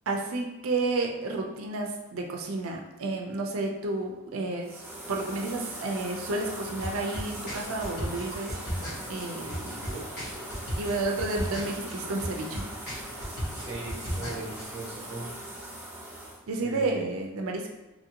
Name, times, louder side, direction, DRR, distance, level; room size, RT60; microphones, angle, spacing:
voice 1, 0.1-4.8 5.1-8.6 9.1-9.8 10.8-12.6 16.5-17.8, right 2 dB, 70° right, 1 dB, 0.4 m, -31 dB
sound 1, 4.6-16.4, right 1 dB, 10° right, 0.4 m, -40 dB
sound 2, 6.6-14.6, equal, 45° left, 1.1 m, -37 dB
voice 2, 9.4-10.1 13.6-15.4 16.6-17.1, right 2 dB, 30° right, -4 dB, 0.9 m, -39 dB
2.9 x 2.6 x 2.8 m, 1.0 s
head